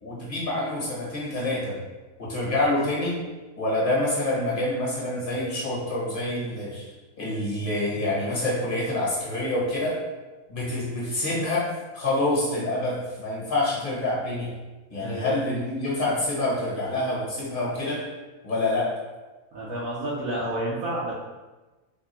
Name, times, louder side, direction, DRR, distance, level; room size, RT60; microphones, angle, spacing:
voice 1, 0.0-1.8 2.2-3.2 3.6-6.9 7.2-10.0 10.5-14.5 14.9-18.1 18.4-19.0, left 1 dB, 40° left, -5 dB, 1.3 m, -27 dB
voice 2, 15.0-15.3 19.5-21.1, right 1 dB, 70° right, -9 dB, 1.3 m, -30 dB
3.7 x 2.3 x 4.3 m, 1.2 s
omnidirectional pair, 1.5 m